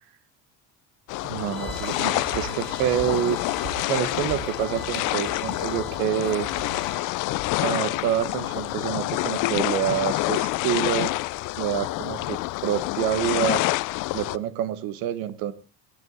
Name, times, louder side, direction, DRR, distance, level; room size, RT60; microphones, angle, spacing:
sound 1, 1.1-14.4, left 20 dB, 60° left, 0.6 m, -27 dB
voice 1, 1.3-3.4 3.9-6.5 7.6-11.1 11.6-13.7 14.1-15.5, right 11 dB, 75° right, 14 dB, 1.4 m, -27 dB
Bowed string instrument, 1.4-7.1, right 3 dB, 30° right, 3.9 m, -45 dB
sound 2, 1.7-6.9, right 5 dB, 50° right, 2.8 m, -41 dB
17.0 x 12.5 x 3.9 m, 0.34 s
cardioid pair, 135°, 35 cm